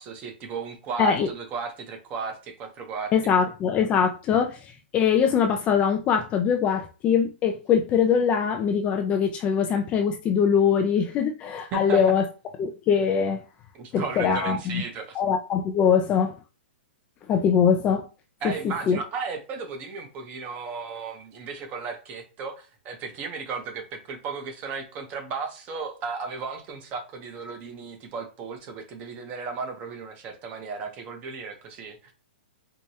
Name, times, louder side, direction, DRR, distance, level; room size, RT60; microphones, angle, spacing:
voice 1, 0.0-3.1 11.7-12.0 13.7-15.2 18.4-32.1, right 5 dB, 25° right, 0.8 m, -35 dB
voice 2, 3.1-4.6 4.9-12.3 12.6-13.4 13.9-14.8 15.1-16.3 17.3-18.0 18.4-19.0, left 7 dB, 20° left, 0.3 m, -22 dB
4.5 x 2.2 x 2.8 m
hypercardioid pair, 150°, 6 cm